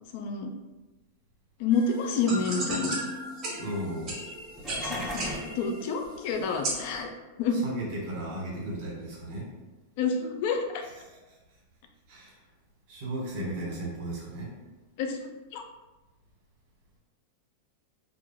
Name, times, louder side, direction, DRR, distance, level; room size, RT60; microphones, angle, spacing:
voice 1, 0.1-0.5 1.6-3.0 4.8-5.3 5.6-7.1 7.4-7.6 10.0-10.8 15.0-15.6, left 4 dB, 60° left, 4 dB, 0.4 m, -28 dB
sound 1, 1.7-7.0, right 1 dB, 35° right, 0.9 m, -36 dB
voice 2, 3.6-4.2 7.5-9.5 11.1-11.4 12.1-12.4 12.9-14.5, right 1 dB, 55° right, -4 dB, 1.2 m, -35 dB
sound 2, 4.4-5.6, left 1 dB, 5° left, 0.6 m, -36 dB
2.4 x 2.3 x 2.9 m, 1.1 s
hypercardioid pair, 110°, 0 cm